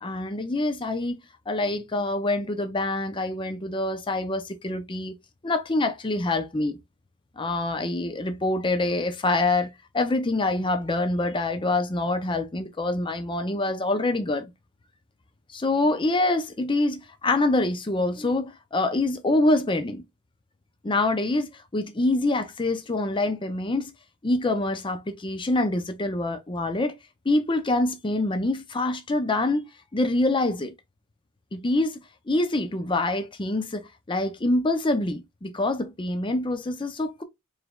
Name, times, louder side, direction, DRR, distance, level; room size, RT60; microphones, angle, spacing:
voice 1, 0.0-1.2 1.5-5.2 5.4-6.8 7.4-14.5 15.5-20.0 20.8-23.9 24.2-27.0 27.3-29.6 29.9-30.7 31.5-32.0 32.3-37.2, left 2 dB, 20° left, 0.6 m, -25 dB
4.9 x 3.2 x 2.3 m
head